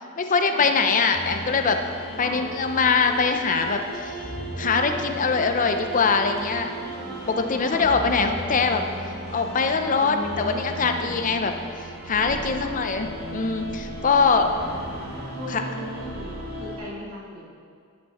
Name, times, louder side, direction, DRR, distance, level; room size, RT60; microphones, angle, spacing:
voice 1, 0.2-1.8 2.2-4.2 4.6-6.7 7.3-8.8 9.3-11.5 12.1-14.5 15.5-15.6, left 5 dB, 40° left, 6 dB, 0.6 m, -22 dB
sound 1, 0.9-15.2, right 1 dB, 30° right, 1.3 m, -45 dB
sound 2, 1.1-16.8, right 1 dB, 50° right, 2.1 m, -36 dB
voice 2, 10.0-11.1 12.5-12.8 14.1-15.1 15.3-17.4, equal, 75° right, -5 dB, 2.6 m, -38 dB
10.5 x 8.0 x 4.2 m, 2.2 s
head